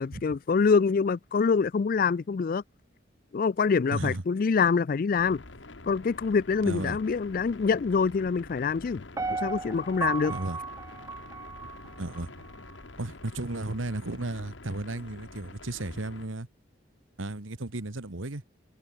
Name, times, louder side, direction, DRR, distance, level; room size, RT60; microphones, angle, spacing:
voice 1, 0.0-2.6 3.3-5.4 5.9-9.0 9.3-10.3, left 5 dB, 45° left, 0.4 m, -25 dB
voice 2, 3.9-4.2 6.6-7.0 10.3-10.6 12.0-12.5 13.0-16.5 17.2-18.4, right 2 dB, 85° right, 1.6 m, -34 dB
sound 1, 5.2-16.3, left 2 dB, 70° left, 1.8 m, -47 dB
Piano, 9.2-12.2 12.7-12.8, right 4 dB, 15° right, 0.5 m, -35 dB
head